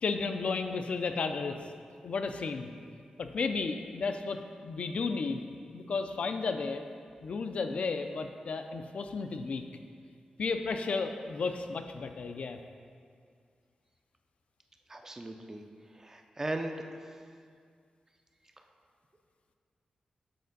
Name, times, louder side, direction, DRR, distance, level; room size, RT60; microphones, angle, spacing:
voice 1, 0.0-1.6 2.0-2.7 3.2-6.8 7.2-9.6 10.4-12.6, left 4 dB, 60° left, 6 dB, 0.4 m, -33 dB
voice 2, 14.9-15.6 15.9-16.8, right 2 dB, 20° right, 4 dB, 0.4 m, -37 dB
7.6 x 4.3 x 3.9 m, 2.1 s
wide cardioid pair, 155°, 2 cm